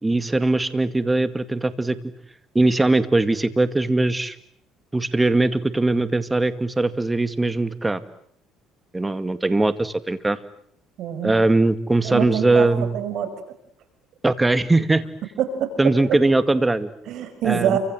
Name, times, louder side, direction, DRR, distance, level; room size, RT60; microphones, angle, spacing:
voice 1, 0.0-2.0 2.5-4.4 4.9-8.0 8.9-10.4 11.2-13.0 14.2-15.0 15.8-16.9 17.4-17.8, right 2 dB, 15° right, 12 dB, 2.1 m, -20 dB
voice 2, 11.0-11.4 12.0-12.7 12.9-13.3 15.4-15.7 17.1-17.8, right 10 dB, 65° right, 10 dB, 5.5 m, -25 dB
29.0 x 25.5 x 7.8 m, 0.66 s
cardioid pair, 100°, 0 cm